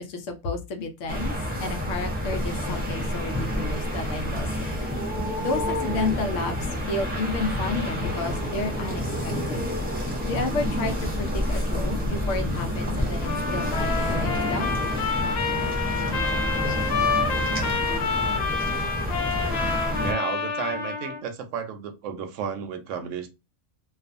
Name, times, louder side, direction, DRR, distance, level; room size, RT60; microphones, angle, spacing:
voice 1, 0.0-1.3 1.6-4.7 5.4-6.5 6.9-9.7 10.2-14.7, left 3 dB, 80° left, 1.0 m, -31 dB
sound 1, 1.1-20.1, equal, 10° right, 0.5 m, -28 dB
Trumpet, 13.2-21.2, left 5 dB, 65° left, 0.8 m, -28 dB
voice 2, 20.0-23.3, right 7 dB, 80° right, 0.9 m, -32 dB
2.4 x 2.4 x 2.5 m
omnidirectional pair, 1.3 m